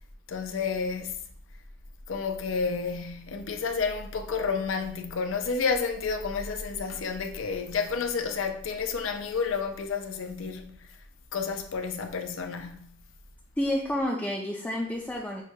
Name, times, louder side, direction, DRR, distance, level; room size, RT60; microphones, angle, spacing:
voice 1, 0.3-1.2 2.1-10.9 11.3-13.0, left 5 dB, 85° left, 0.5 m, -30 dB
voice 2, 13.6-15.4, left 1 dB, 5° left, 0.4 m, -29 dB
6.0 x 2.2 x 2.7 m
head